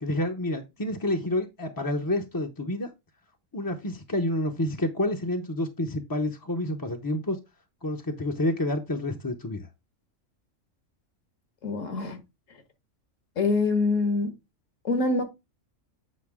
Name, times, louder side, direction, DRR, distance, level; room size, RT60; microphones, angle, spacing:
voice 1, 0.0-2.9 3.5-7.4 7.8-9.7, left 1 dB, 20° left, 0.6 m, -29 dB
voice 2, 11.6-12.2 13.4-14.3 14.8-15.2, left 3 dB, 70° left, 1.8 m, -25 dB
8.3 x 5.3 x 3.5 m
omnidirectional pair, 1.4 m